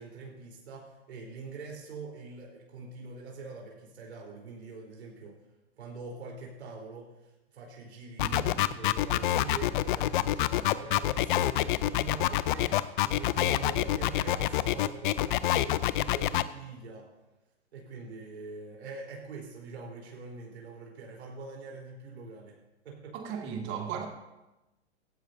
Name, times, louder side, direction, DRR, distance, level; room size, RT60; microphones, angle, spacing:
voice 1, 0.0-5.4 5.8-17.1 17.7-22.5 22.8-23.2, right 4 dB, 75° right, -2 dB, 4.0 m, -44 dB
sound 1, 8.2-16.4, left 14 dB, 50° left, 0.6 m, -26 dB
voice 2, 8.2-8.5 23.1-24.1, right 7 dB, 35° right, 3 dB, 2.2 m, -36 dB
16.5 x 14.0 x 2.7 m, 1.0 s
hypercardioid pair, 125°, 33 cm